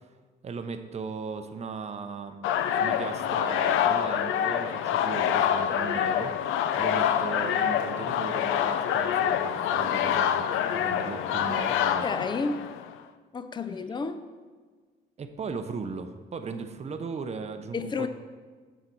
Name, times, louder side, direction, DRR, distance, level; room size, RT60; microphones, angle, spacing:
voice 1, 0.4-2.5 2.8-12.0 15.2-18.1, right 5 dB, 35° right, 8 dB, 0.6 m, -37 dB
sound 1, 2.4-12.9, left 9 dB, 90° left, 0.4 m, -26 dB
voice 2, 12.0-12.7 13.3-14.2 17.7-18.1, left 4 dB, 25° left, 11 dB, 0.4 m, -31 dB
6.6 x 5.9 x 4.5 m, 1.5 s
cardioid pair, 90°, 20 cm